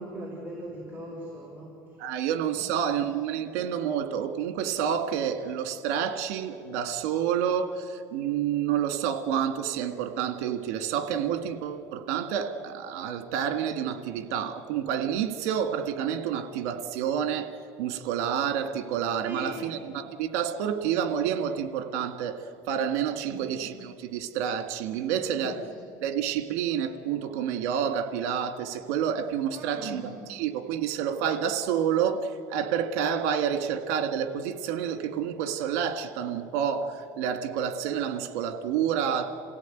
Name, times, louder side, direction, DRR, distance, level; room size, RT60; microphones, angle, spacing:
voice 1, 0.0-2.0 2.5-2.7 3.0-3.1 19.2-19.7 23.2-23.5 25.2-25.8 29.5-30.0, right 1 dB, 25° right, -3 dB, 5.0 m, -40 dB
voice 2, 2.0-17.5 17.8-25.6 26.0-39.3, right 8 dB, 80° right, 8 dB, 2.0 m, -29 dB
28.5 x 16.5 x 9.3 m, 2.3 s
supercardioid pair, 120°, 8 cm